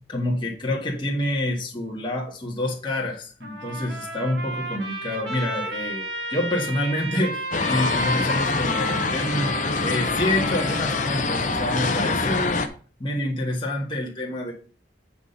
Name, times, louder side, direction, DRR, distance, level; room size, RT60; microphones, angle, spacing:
voice 1, 0.1-12.6 13.0-14.5, left 1 dB, 25° left, -2 dB, 1.7 m, -27 dB
Trumpet, 3.4-12.2, right 2 dB, 65° right, 1.9 m, -33 dB
sound 1, 7.5-12.7, left 4 dB, 40° left, 0.8 m, -25 dB
8.9 x 4.3 x 5.3 m, 0.41 s
head